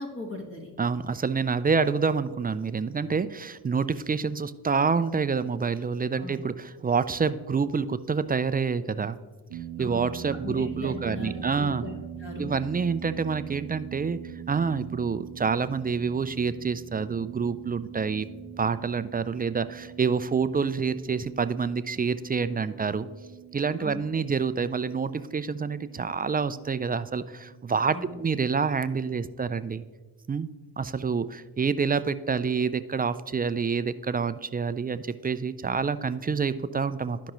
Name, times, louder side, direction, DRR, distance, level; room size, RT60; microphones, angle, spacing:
voice 1, 0.0-0.7 6.2-6.4 9.8-10.1 10.4-12.5 23.8-24.0 27.9-28.2, left 3 dB, 30° left, 1 dB, 1.4 m, -38 dB
voice 2, 0.8-9.2 9.8-11.8 12.4-14.2 14.5-18.3 18.6-23.1 23.5-29.9 30.3-30.5 30.8-37.3, right 5 dB, 25° right, 13 dB, 0.3 m, -27 dB
sound 1, 9.5-27.9, right 10 dB, 75° right, 0.7 m, -43 dB
12.5 x 5.2 x 3.0 m, 1.3 s
supercardioid pair, 45°, 42 cm